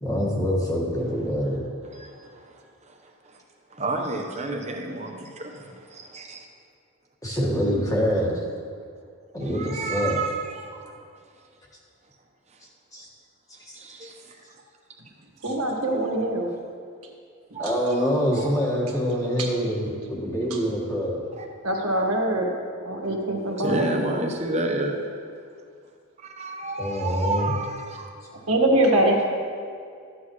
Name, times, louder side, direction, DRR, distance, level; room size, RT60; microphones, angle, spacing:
voice 1, 0.0-1.6 7.2-8.4 9.3-10.2 12.9-13.1 13.7-13.8 17.6-21.2 26.8-27.5, equal, 15° left, -3 dB, 1.7 m, -25 dB
voice 2, 1.8-2.6 2.9-3.0 3.2-3.4 3.7-6.4 9.4-10.9 13.7-14.4 17.5-18.5 21.4-21.5 23.6-25.0 26.2-28.1 29.2-29.3, right 2 dB, 30° right, 2 dB, 1.0 m, -31 dB
voice 3, 15.4-16.5 19.4-19.5 20.5-20.6 21.6-22.5 22.8-23.9 28.5-29.2, right 1 dB, 85° right, 1 dB, 1.6 m, -23 dB
13.5 x 9.6 x 3.2 m, 2.3 s
head